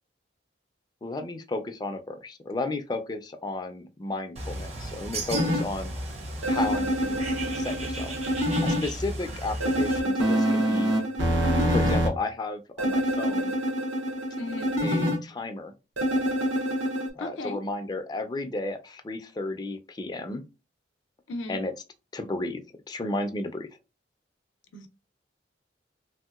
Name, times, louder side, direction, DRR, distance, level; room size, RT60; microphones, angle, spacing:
voice 1, 1.0-5.9 6.5-8.1 8.6-10.9 11.6-13.5 14.8-15.7 17.1-20.4 21.5-21.7 22.1-23.7, left 2 dB, 20° left, 0.3 m, -33 dB
Bird, 4.4-10.0, right 2 dB, 35° right, 0.5 m, -36 dB
sound 1, 5.3-5.6 6.4-8.8 9.6-12.1 12.8-15.2 16.0-17.1, equal, 90° right, 0.7 m, -25 dB
voice 2, 14.4-14.8 17.2-17.6 21.3-21.6 24.7-24.9, left 2 dB, 85° left, 0.5 m, -36 dB
3.0 x 2.7 x 2.3 m
head